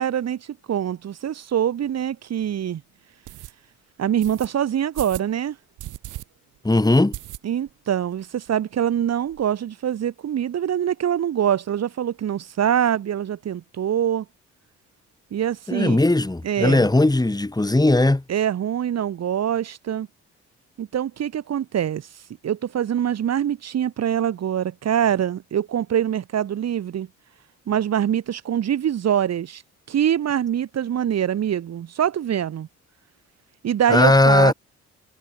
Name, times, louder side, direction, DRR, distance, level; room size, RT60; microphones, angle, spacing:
voice 1, 0.0-2.8 4.0-5.6 7.4-14.2 15.3-16.0 16.4-16.9 18.3-20.1 20.8-22.1 22.4-27.1 27.7-29.6 29.9-32.7 33.6-34.5, right 9 dB, 60° right, 2.1 m, -24 dB
sound 1, 1.8-1.9 2.4-2.5 3.2-3.5 4.2-4.5 4.9-5.3 5.8-6.2 6.6-6.7 7.1-7.8 8.1-8.2 8.5-8.6 8.8-9.4, right 15 dB, 85° right, 5.9 m, -37 dB
voice 2, 6.6-7.2 15.7-18.2 33.9-34.5, left 2 dB, 15° left, 5.8 m, -18 dB
cardioid pair, 90°, 30 cm